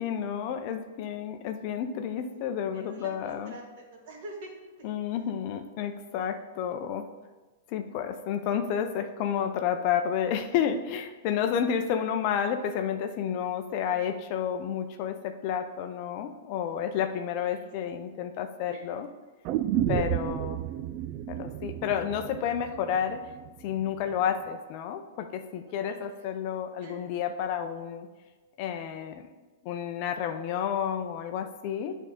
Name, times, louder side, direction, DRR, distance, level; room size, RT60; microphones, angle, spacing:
voice 1, 0.0-3.5 4.8-7.1 7.7-19.1 19.9-20.6 21.3-23.2 23.6-28.1 28.6-29.3 29.6-31.9, left 8 dB, 45° left, 7 dB, 0.6 m, -30 dB
voice 2, 2.2-4.9 13.8-14.1 17.5-17.7 18.0-18.1 18.7-18.8 25.8-26.1 26.8-27.0 31.9-32.0, right 2 dB, 60° right, -1 dB, 2.2 m, -47 dB
sound 1, 19.4-23.5 23.8-23.9, right 12 dB, 40° right, 0.3 m, -31 dB
8.4 x 3.6 x 5.2 m, 1.2 s
hypercardioid pair, 125°, 0 cm